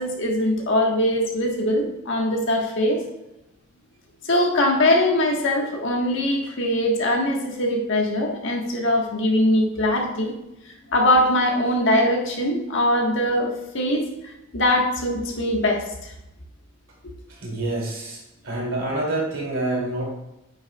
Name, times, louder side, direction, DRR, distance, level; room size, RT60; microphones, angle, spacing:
voice 1, 0.0-3.0 4.2-10.3 10.9-14.0 14.5-16.1, left 1 dB, 65° left, 1 dB, 1.4 m, -22 dB
voice 2, 17.3-20.0, right 2 dB, 80° right, -2 dB, 2.7 m, -27 dB
8.9 x 6.3 x 2.3 m, 0.92 s
head